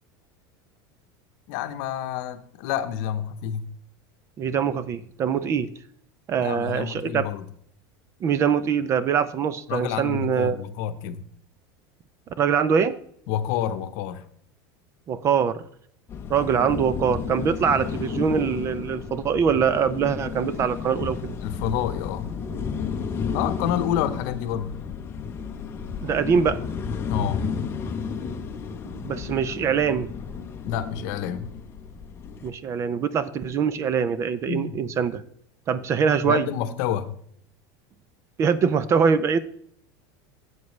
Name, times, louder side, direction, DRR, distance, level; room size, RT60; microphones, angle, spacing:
voice 1, 1.5-3.6 6.4-7.5 9.7-11.2 13.3-14.2 21.4-22.3 23.3-24.7 27.1-27.4 30.6-31.5 34.5-34.8 36.2-37.1, left 10 dB, 60° left, 11 dB, 0.9 m, -28 dB
voice 2, 4.4-5.7 6.3-7.2 8.2-10.6 12.4-13.0 15.1-15.6 16.3-21.3 26.0-26.6 28.9-30.1 32.4-35.2 35.7-36.5 38.4-39.4, right 7 dB, 25° right, 15 dB, 0.4 m, -23 dB
sound 1, 16.1-32.5, left 6 dB, 20° left, 0.8 m, -32 dB
12.0 x 8.0 x 3.2 m, 0.66 s
supercardioid pair, 160°, 11 cm